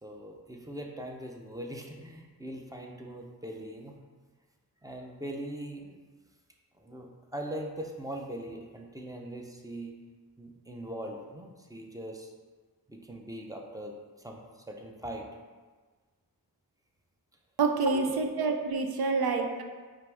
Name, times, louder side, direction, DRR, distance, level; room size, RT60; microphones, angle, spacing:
voice 1, 0.0-4.0 4.8-6.0 6.8-10.0 10.4-12.3 12.9-15.3 17.9-18.2 19.0-19.4, right 1 dB, 10° right, 1 dB, 0.6 m, -41 dB
voice 2, 17.6-19.6, right 4 dB, 75° right, 5 dB, 0.5 m, -27 dB
4.7 x 2.6 x 3.4 m, 1.4 s
cardioid pair, 45°, 38 cm